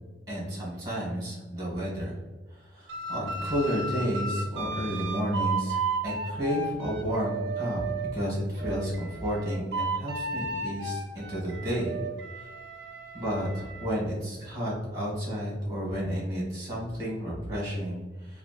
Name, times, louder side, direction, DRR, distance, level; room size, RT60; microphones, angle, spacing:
voice 1, 0.3-2.2 2.5-7.8 8.1-12.0 12.3-12.5 13.1-18.4, equal, 20° right, -5 dB, 1.4 m, -31 dB
sound 1, 2.9-8.1 8.6-13.9, right 3 dB, 65° right, 0.4 m, -34 dB
3.2 x 2.6 x 2.5 m, 1.2 s
head